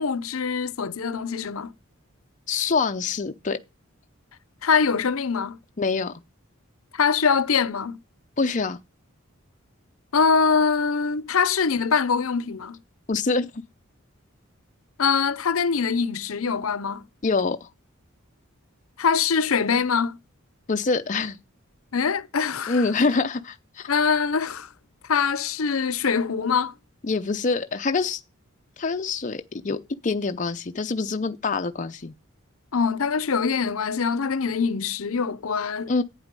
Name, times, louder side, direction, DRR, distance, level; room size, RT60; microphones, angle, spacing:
voice 1, 0.0-1.7 4.6-5.6 6.9-8.0 10.1-12.8 15.0-17.0 19.0-20.2 21.9-22.9 23.9-24.7 25.1-26.7 32.7-35.9, left 5 dB, 80° left, 0.7 m, -23 dB
voice 2, 2.5-3.6 5.8-6.1 8.4-8.8 13.1-13.5 17.2-17.7 20.7-21.4 22.7-23.9 27.0-28.2 28.8-32.1 35.9-36.0, left 4 dB, 35° left, 0.6 m, -25 dB
11.5 x 9.0 x 5.3 m
head